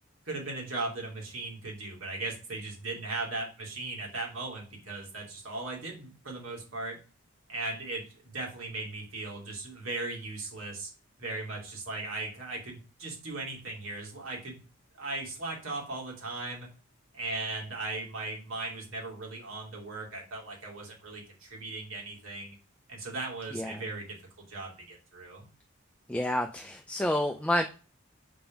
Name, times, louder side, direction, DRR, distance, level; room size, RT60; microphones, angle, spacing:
voice 1, 0.2-7.0 7.5-10.9 11.2-14.6 15.0-16.7 17.1-22.6 22.9-24.2 24.5-25.5, right 2 dB, 85° right, -1 dB, 2.4 m, -38 dB
voice 2, 23.5-23.8 26.1-27.6, left 1 dB, 5° left, 4 dB, 0.4 m, -29 dB
5.0 x 3.7 x 5.8 m, 0.35 s
head